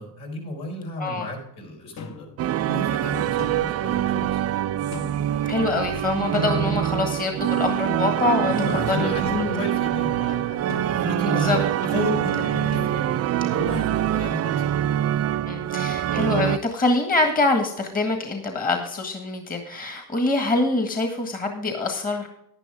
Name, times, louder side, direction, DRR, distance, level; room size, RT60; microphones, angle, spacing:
voice 1, 0.0-2.3 2.6-4.4 8.4-14.6, left 1 dB, 65° left, 1 dB, 4.6 m, -32 dB
sound 1, 2.0-2.4 3.4-3.9 4.9-5.3 6.3-7.2 8.9-9.7 10.7-11.3 12.3-13.2, left 5 dB, 40° left, 1.2 m, -39 dB
sound 2, 2.4-16.6, right 11 dB, 35° right, 0.5 m, -24 dB
voice 2, 5.4-8.5 8.9-9.1 11.3-11.6 15.5-22.3, left 3 dB, 20° left, 4 dB, 1.6 m, -25 dB
10.5 x 10.5 x 3.5 m, 0.75 s
supercardioid pair, 100°, 44 cm